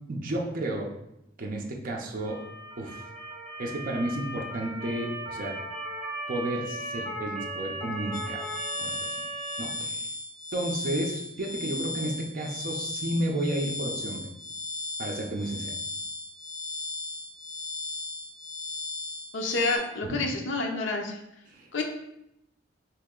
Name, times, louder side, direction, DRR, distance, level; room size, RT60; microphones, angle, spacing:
voice 1, 0.1-0.9 1.4-2.4 2.8-3.0 3.6-5.6 6.3-8.4 8.8-8.9 9.6-10.1 10.5-14.2 15.0-15.7 20.0-20.2 21.5-21.7, right 1 dB, 45° right, 0 dB, 0.5 m, -32 dB
Motor vehicle (road) / Siren, 2.2-9.6, right 1 dB, ahead, 1.4 m, -37 dB
sound 1, 8.1-19.8, left 3 dB, 20° left, 0.4 m, -36 dB
voice 2, 19.3-21.2 21.7-21.8, left 3 dB, 70° left, 2 dB, 0.5 m, -28 dB
3.0 x 2.8 x 3.6 m, 0.84 s
head